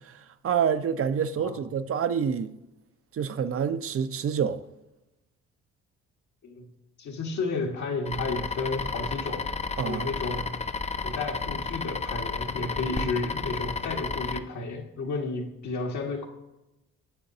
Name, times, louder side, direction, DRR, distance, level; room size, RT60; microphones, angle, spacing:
voice 1, 0.4-2.5 3.1-4.6 9.8-10.1 13.0-13.1, right 7 dB, 50° right, 0.6 m, -27 dB
voice 2, 7.0-9.5 9.8-10.6 11.0-16.3, left 3 dB, 70° left, 1.6 m, -32 dB
sound 1, 8.1-14.4, left 4 dB, 25° left, 0.5 m, -32 dB
8.9 x 7.4 x 2.7 m
cardioid pair, 70°, 30 cm